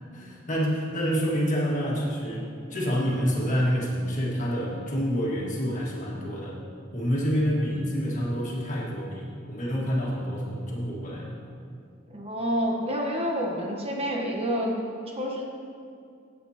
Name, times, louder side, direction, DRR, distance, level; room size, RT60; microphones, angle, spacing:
voice 1, 0.1-6.6 6.9-11.3, equal, 40° left, -4 dB, 1.7 m, -28 dB
voice 2, 12.1-14.7 15.1-15.4, equal, 30° right, -1 dB, 1.1 m, -28 dB
14.5 x 7.9 x 2.9 m, 2.4 s
head